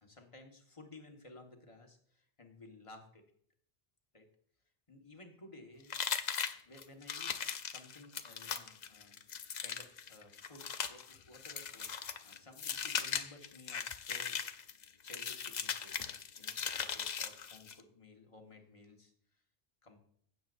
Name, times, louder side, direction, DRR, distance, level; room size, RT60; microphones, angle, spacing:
voice 1, 0.0-3.2 4.1-4.3 4.9-6.0 6.6-11.9 12.2-14.8 15.0-19.1 19.8-20.0, left 2 dB, 30° left, 3 dB, 1.5 m, -56 dB
sound 1, 5.9-17.8, left 7 dB, 50° left, 0.6 m, -39 dB
16.0 x 7.8 x 2.6 m, 0.63 s
omnidirectional pair, 1.1 m